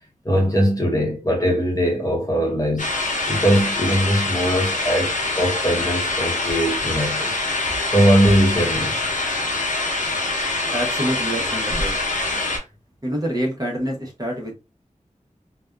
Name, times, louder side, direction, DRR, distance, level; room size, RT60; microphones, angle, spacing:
voice 1, 0.2-2.9 3.3-7.4 7.8-9.0, equal, 25° left, 0.9 m, -20 dB
sound 1, 2.8-12.6, left 2 dB, 75° left, 0.8 m, -24 dB
voice 2, 10.7-12.0 13.0-14.5, equal, 30° right, 1.0 m, -26 dB
2.6 x 2.2 x 2.3 m
wide cardioid pair, 50°, 13 cm